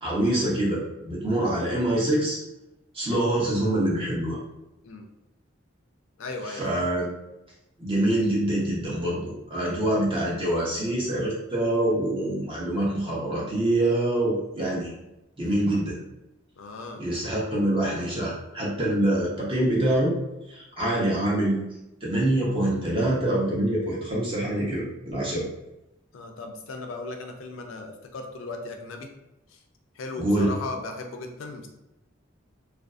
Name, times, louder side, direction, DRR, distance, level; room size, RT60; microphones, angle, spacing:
voice 1, 0.0-2.4 2.9-4.4 6.5-7.1 7.8-14.9 15.4-16.0 17.0-20.2 20.5-21.6 22.0-25.5 30.2-30.5, right 1 dB, 25° right, -5 dB, 0.7 m, -25 dB
voice 2, 6.2-6.9 16.6-17.0 26.1-29.1 29.5-29.6 29.9-31.7, left 3 dB, 90° left, 4 dB, 0.4 m, -37 dB
2.5 x 2.3 x 2.3 m, 0.93 s
head